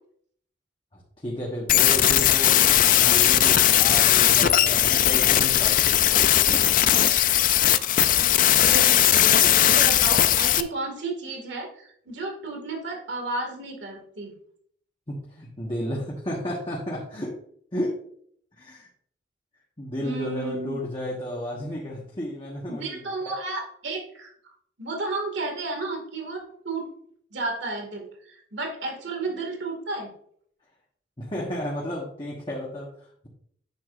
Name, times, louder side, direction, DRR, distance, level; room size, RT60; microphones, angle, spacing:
voice 1, 0.9-6.7 15.1-17.4 17.7-18.0 18.6-18.9 19.8-23.4 31.2-33.3, left 1 dB, 25° left, -4 dB, 1.3 m, -33 dB
sound 1, 1.7-10.6, left 12 dB, 45° left, 0.4 m, -18 dB
voice 2, 8.2-14.4 20.0-20.8 22.7-24.5 24.8-26.9 27.3-30.1, right 3 dB, 75° right, 2 dB, 2.1 m, -33 dB
9.4 x 7.0 x 2.5 m, 0.63 s
head